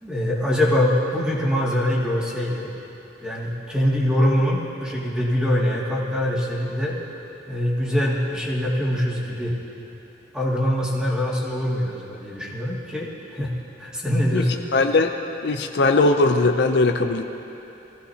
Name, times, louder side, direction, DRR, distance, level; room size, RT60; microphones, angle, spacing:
voice 1, 0.0-2.7 3.2-7.0 7.5-9.5 10.3-13.5 13.8-14.6, equal, 5° right, -6 dB, 2.3 m, -23 dB
voice 2, 14.7-15.1 15.4-17.2, left 3 dB, 65° left, 6 dB, 0.6 m, -19 dB
22.5 x 15.5 x 2.9 m, 3.0 s
head